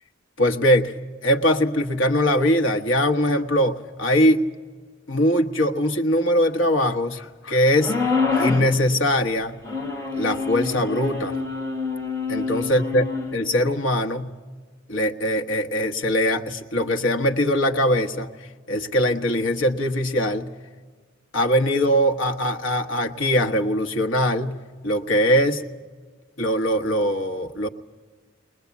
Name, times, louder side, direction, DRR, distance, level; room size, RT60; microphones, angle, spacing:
voice 1, 0.4-4.4 5.1-8.0 8.3-9.6 10.1-11.4 12.3-14.4 14.9-18.3 18.7-20.5 21.3-25.6 26.4-27.7, equal, 75° left, 4 dB, 1.3 m, -21 dB
sound 1, 7.8-8.7 9.6-13.3, left 4 dB, 15° left, 3.2 m, -26 dB
22.0 x 20.0 x 8.3 m, 1.5 s
head